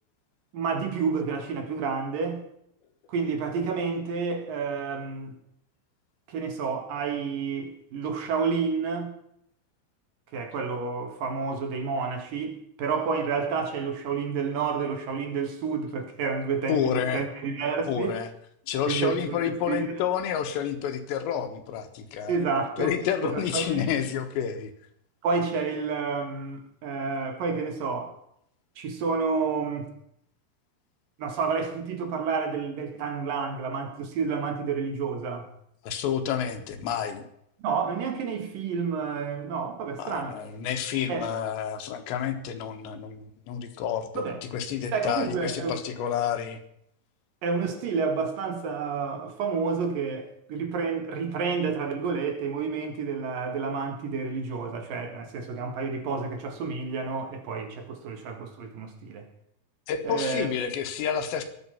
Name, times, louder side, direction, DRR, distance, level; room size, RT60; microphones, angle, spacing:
voice 1, 0.5-2.4 3.1-5.4 6.3-9.1 10.3-18.2 18.9-19.8 22.3-23.0 23.2-23.9 25.2-28.2 28.8-29.9 31.2-35.5 37.6-40.4 41.1-41.3 44.1-44.4 44.9-45.8 47.4-59.3 60.1-60.5, right 5 dB, 60° right, 3.0 m, -30 dB
voice 2, 16.7-17.2 17.9-18.3 18.7-22.4 22.8-24.7 35.9-37.2 40.0-44.2 44.5-46.6 59.9-61.4, left 8 dB, 85° left, 3.6 m, -29 dB
21.0 x 8.3 x 5.7 m
omnidirectional pair, 4.9 m